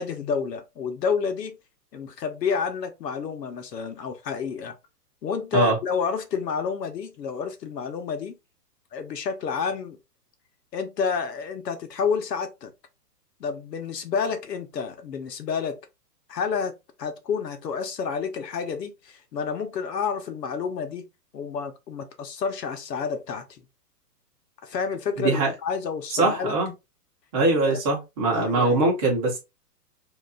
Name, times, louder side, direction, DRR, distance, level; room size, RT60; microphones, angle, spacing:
voice 1, 0.0-1.6 1.9-4.7 5.2-8.3 8.9-10.0 10.7-12.7 13.4-15.8 16.3-16.7 17.0-21.0 21.3-23.4 24.6-26.6 27.6-27.8 28.3-28.8, left 6 dB, 80° left, 1.2 m, -29 dB
voice 2, 25.2-25.5 26.1-26.7 27.3-29.4, right 3 dB, 20° right, 1.3 m, -22 dB
5.4 x 2.9 x 2.5 m
hypercardioid pair, 175°, 49 cm